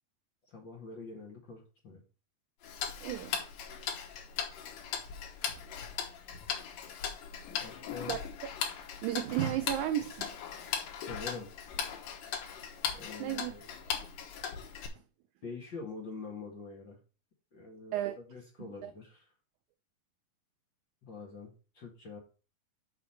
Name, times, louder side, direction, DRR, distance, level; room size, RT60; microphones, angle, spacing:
voice 1, 0.5-2.0 7.6-8.2 11.0-11.5 12.9-13.6 15.4-17.0 17.5-19.3 21.0-22.2, left 4 dB, 40° left, 1.8 m, -45 dB
Tick-tock, 2.6-14.9, left 7 dB, 75° left, 2.8 m, -39 dB
voice 2, 3.0-3.4 8.1-8.2 9.0-10.3 13.2-13.5 17.9-18.2 18.6-18.9, right 12 dB, 90° right, 1.7 m, -33 dB
6.1 x 5.0 x 5.8 m
omnidirectional pair, 4.0 m